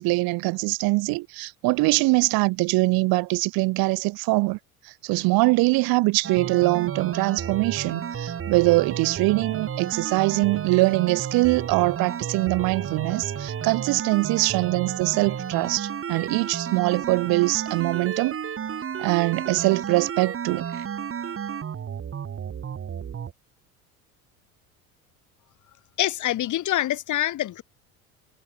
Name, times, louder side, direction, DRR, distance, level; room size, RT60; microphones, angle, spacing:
voice 1, 0.0-4.6 5.0-18.4 19.0-20.7, right 23 dB, 55° right, 5.7 m, -23 dB
sound 1, 6.2-23.3, right 8 dB, 30° right, 3.3 m, -32 dB
voice 2, 26.0-27.6, left 13 dB, 45° left, 3.4 m, -25 dB
figure-of-eight pair, 65°, 43 cm